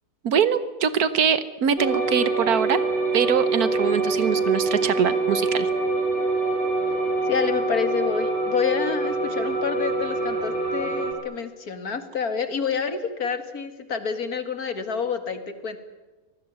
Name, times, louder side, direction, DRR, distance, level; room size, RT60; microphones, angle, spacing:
voice 1, 0.2-2.8 3.1-5.7, right 7 dB, 80° right, 14 dB, 1.5 m, -23 dB
sound 1, 1.8-11.1, right 3 dB, 35° right, 4.9 m, -25 dB
voice 2, 7.3-15.8, left 6 dB, 75° left, 9 dB, 2.5 m, -28 dB
25.0 x 19.0 x 9.4 m, 1.2 s
omnidirectional pair, 1.6 m